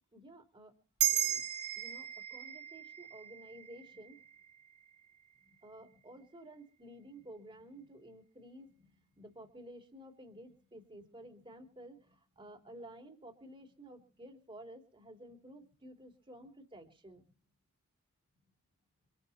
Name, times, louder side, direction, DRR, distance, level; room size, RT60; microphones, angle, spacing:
voice 1, 0.1-0.7 1.1-1.4 1.8-4.2 5.6-17.3, right 1 dB, 25° right, 3 dB, 3.2 m, -53 dB
sound 1, 1.0-5.7, right 12 dB, 70° right, 1.6 m, -37 dB
25.0 x 9.7 x 4.2 m, 0.41 s
head